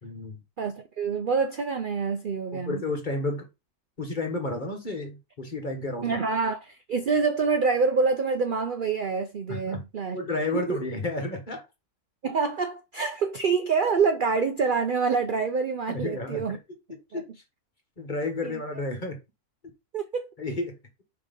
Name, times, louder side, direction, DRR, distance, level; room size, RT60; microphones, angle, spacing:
voice 1, 0.0-0.4 2.5-3.5 4.0-6.2 9.5-9.8 10.1-11.6 15.9-16.6 17.1-17.2 18.0-19.2 20.4-20.7, left 2 dB, 35° left, 1.4 m, -31 dB
voice 2, 0.6-2.8 6.0-10.2 10.5-10.8 12.2-16.6 17.1-17.2 18.4-18.6 19.9-20.3, right 5 dB, 55° right, 0.5 m, -26 dB
5.9 x 3.4 x 5.1 m
omnidirectional pair, 1.6 m